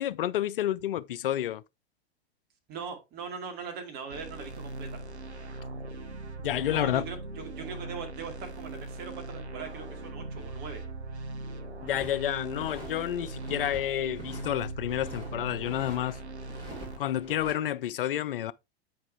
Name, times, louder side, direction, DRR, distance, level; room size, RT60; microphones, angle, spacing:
voice 1, 0.0-1.6 6.4-7.1 11.8-16.2 17.0-18.5, left 12 dB, 60° left, 0.5 m, -30 dB
voice 2, 2.7-5.0 6.7-10.8, right 5 dB, 30° right, 2.2 m, -40 dB
sound 1, 4.1-17.0, right 2 dB, 85° right, 0.7 m, -40 dB
sound 2, 11.9-12.9 13.3-13.8 14.1-15.3 15.6-16.0 16.4-17.5, right 2 dB, 15° right, 4.1 m, -45 dB
8.5 x 4.9 x 3.3 m
figure-of-eight pair, 95°, 32 cm